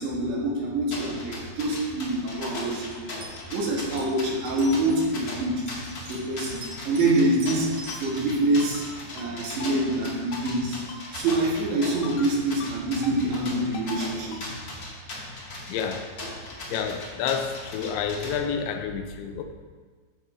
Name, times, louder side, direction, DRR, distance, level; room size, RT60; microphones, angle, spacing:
voice 1, 0.0-2.9 3.5-5.5 6.0-7.7 8.0-8.8 9.1-10.8 11.1-14.5, right 2 dB, 80° right, -4 dB, 4.4 m, -25 dB
sound 1, 0.9-18.4, left 1 dB, 45° left, 1.6 m, -39 dB
sound 2, 3.2-3.6 4.0-4.1 4.4-5.0 5.7-7.1 7.4-8.0, left 1 dB, 45° right, 2.6 m, -41 dB
Ringtone, 7.9-8.0 8.6-8.9 9.2-9.3 9.6-9.7 10.3-10.6 10.9-11.0 11.3-11.5 12.0-12.3 12.6-12.7 13.0-13.2 13.7-14.0 14.3-14.5, left 5 dB, 70° left, 3.0 m, -40 dB
voice 2, 15.7-16.1 16.7-19.4, left 7 dB, 85° left, 5 dB, 3.2 m, -29 dB
11.5 x 7.5 x 4.7 m, 1.5 s
omnidirectional pair, 5.1 m